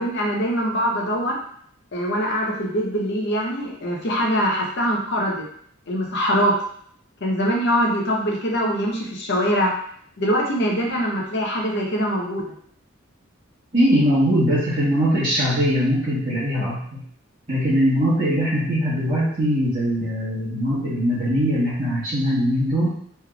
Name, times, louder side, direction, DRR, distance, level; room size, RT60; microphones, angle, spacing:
voice 1, 0.0-1.4 1.9-5.4 5.9-6.5 7.2-9.7 10.2-12.4, equal, 50° left, -1 dB, 0.7 m, -23 dB
voice 2, 13.7-17.0 17.5-22.9, equal, 30° right, -14 dB, 1.2 m, -21 dB
3.3 x 3.2 x 2.3 m, 0.62 s
head